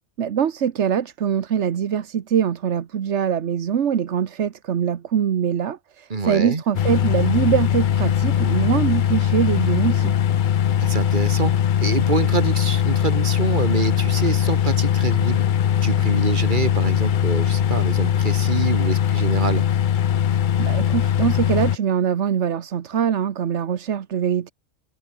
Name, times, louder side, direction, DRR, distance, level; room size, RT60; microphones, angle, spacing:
voice 1, 0.2-10.1 20.6-24.5, right 8 dB, 70° right, 1.3 m, -23 dB
voice 2, 6.1-6.6 10.8-11.5 11.8-15.4 15.8-19.6, right 3 dB, 40° right, 2.2 m, -25 dB
sound 1, 6.7-21.8, left 9 dB, 55° left, 0.6 m, -20 dB
omnidirectional pair, 1.3 m